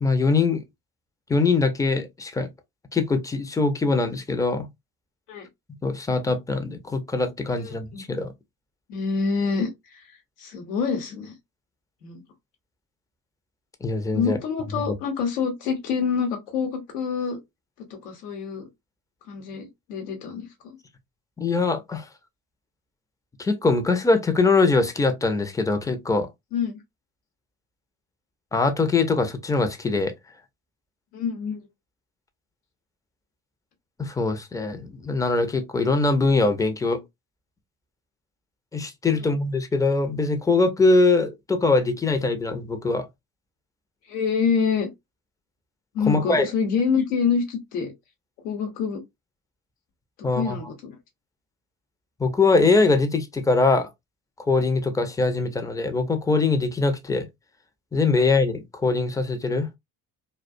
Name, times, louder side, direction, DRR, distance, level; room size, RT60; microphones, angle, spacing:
voice 1, 0.0-0.6 1.3-2.5 2.9-4.7 5.8-8.3 13.8-14.4 14.7-14.9 21.4-22.1 23.4-26.3 28.5-30.1 34.0-37.0 38.7-43.1 46.1-46.5 50.2-50.6 52.2-53.9 54.4-57.3 57.9-59.7, left 3 dB, 10° left, 0.4 m, -22 dB
voice 2, 7.6-8.0 8.9-10.0 10.4-11.3 12.0-12.2 14.1-17.4 17.9-18.7 19.3-20.8 26.5-26.8 31.1-31.6 39.2-39.3 44.1-44.9 45.9-47.9 48.4-49.0 50.3-51.0, left 6 dB, 90° left, 0.9 m, -26 dB
2.3 x 2.2 x 2.5 m
hypercardioid pair, 55°, 45 cm